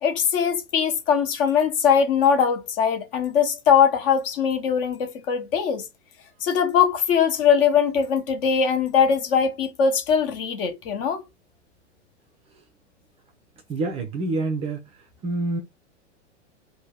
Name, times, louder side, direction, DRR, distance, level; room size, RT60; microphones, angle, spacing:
voice 1, 0.0-5.8 6.4-11.2, left 7 dB, 50° left, 0.9 m, -21 dB
voice 2, 13.7-14.8 15.2-15.6, right 2 dB, 15° right, 0.4 m, -26 dB
2.7 x 2.2 x 3.3 m
figure-of-eight pair, 100°, 37 cm